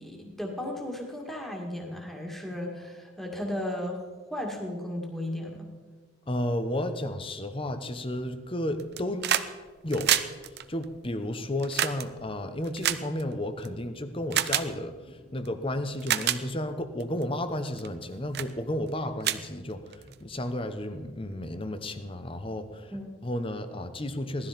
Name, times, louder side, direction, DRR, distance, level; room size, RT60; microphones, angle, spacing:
voice 1, 0.0-5.7 22.9-23.1, left 1 dB, ahead, 0 dB, 2.0 m, -35 dB
voice 2, 6.3-9.4 9.8-10.2 10.4-22.9 23.2-24.5, left 1 dB, 25° left, 9 dB, 1.0 m, -33 dB
sound 1, 8.8-9.5 9.8-13.7 14.3-14.7 15.4-15.5 15.9-16.4 17.0-17.2 17.8-18.0 18.3-18.5 18.9-19.0 19.2-20.1 21.3-21.4, right 11 dB, 50° right, 0.7 m, -28 dB
17.5 x 13.0 x 5.2 m, 1.4 s
head